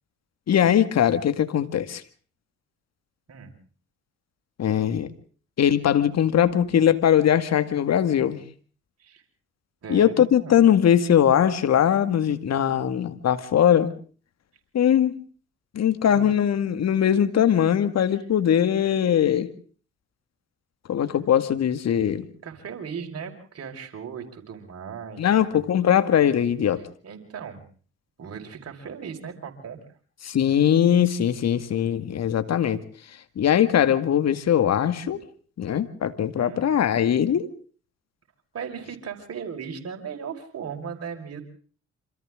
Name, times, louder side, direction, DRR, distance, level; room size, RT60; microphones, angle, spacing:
voice 1, 0.5-2.0 4.6-5.1 5.6-8.4 9.9-13.9 14.7-15.2 15.7-19.5 20.9-22.3 25.2-26.8 30.2-32.8 33.4-35.2 35.6-37.5, left 9 dB, 55° left, 11 dB, 2.1 m, -21 dB
voice 2, 9.8-10.7 16.0-16.3 18.1-18.2 22.4-25.6 27.0-27.7 28.2-29.8 36.3-36.7 38.5-41.4, right 6 dB, 50° right, 3 dB, 5.6 m, -37 dB
28.0 x 26.0 x 3.8 m, 0.44 s
hypercardioid pair, 50°, 31 cm